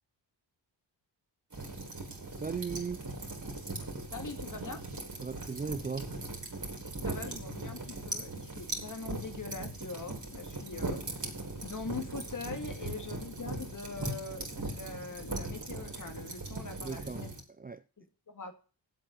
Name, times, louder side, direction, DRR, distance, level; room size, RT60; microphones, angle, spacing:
sound 1, 1.5-17.4, right 2 dB, 40° right, 3.9 m, -39 dB
voice 1, 2.4-3.0 5.2-6.1 16.8-17.2 17.6-17.8, right 5 dB, 20° right, 0.4 m, -37 dB
voice 2, 4.1-4.8 7.0-11.2 11.6-17.3 18.0-18.5, left 4 dB, 40° left, 2.2 m, -42 dB
8.1 x 7.8 x 6.9 m
cardioid pair, 65°, 46 cm